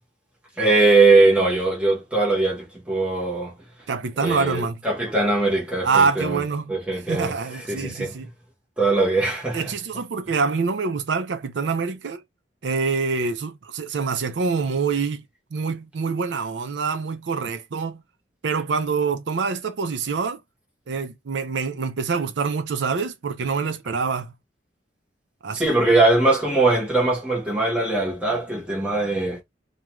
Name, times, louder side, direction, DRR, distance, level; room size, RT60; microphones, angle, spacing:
voice 1, 0.6-3.5 4.2-6.4 6.7-8.2 8.8-9.7 25.5-29.4, right 2 dB, 5° right, 0.9 m, -21 dB
voice 2, 3.9-4.8 5.8-6.7 7.1-8.3 9.5-12.2 12.6-15.2 15.5-18.0 18.4-20.4 20.9-24.3 25.4-25.7, right 5 dB, 80° right, 0.5 m, -25 dB
2.4 x 2.3 x 3.0 m
head